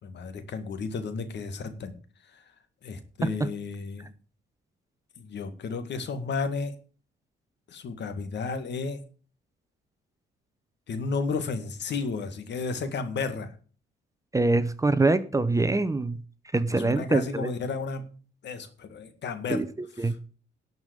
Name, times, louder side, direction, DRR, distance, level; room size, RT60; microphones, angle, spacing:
voice 1, 0.0-2.0 2.3-2.4 2.8-4.1 5.2-6.8 7.7-9.0 10.9-13.5 16.7-18.1 18.4-19.7 20.0-20.2, left 4 dB, 60° left, 9 dB, 2.1 m, -33 dB
voice 2, 14.3-16.2 16.5-17.5 19.5-20.2, right 2 dB, 15° right, 13 dB, 0.9 m, -24 dB
11.5 x 5.5 x 8.4 m, 0.40 s
cardioid pair, 90°, 20 cm